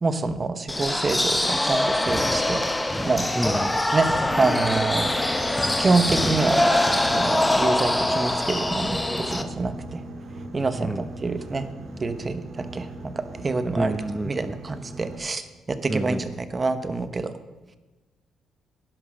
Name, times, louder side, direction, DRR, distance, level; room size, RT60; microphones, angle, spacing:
voice 1, 0.0-2.6 3.1-3.2 3.9-4.1 4.4-5.1 5.8-6.7 7.1-10.0 10.5-11.7 12.0-13.9 14.2-17.3, right 3 dB, 30° right, 11 dB, 1.1 m, -26 dB
sound 1, 0.7-9.4, left 1 dB, 10° left, 1.0 m, -23 dB
voice 2, 3.4-3.8 10.8-11.0 13.7-14.5 15.9-16.2, right 1 dB, 10° right, 10 dB, 0.6 m, -28 dB
Boat Water vehicle, 4.2-15.2, right 1 dB, 60° right, 2.1 m, -39 dB
11.0 x 10.5 x 6.4 m, 1.2 s
cardioid pair, 90°, 0 cm